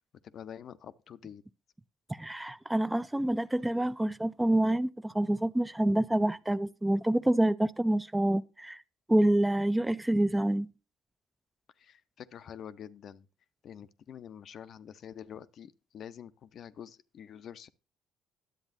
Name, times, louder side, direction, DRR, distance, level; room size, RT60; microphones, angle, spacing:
voice 1, 0.2-1.4 11.8-13.3 13.6-17.7, left 9 dB, 60° left, 0.5 m, -47 dB
voice 2, 2.1-8.8 9.1-10.7, right 1 dB, 10° right, 0.3 m, -27 dB
10.5 x 7.8 x 2.5 m
supercardioid pair, 75°, 0 cm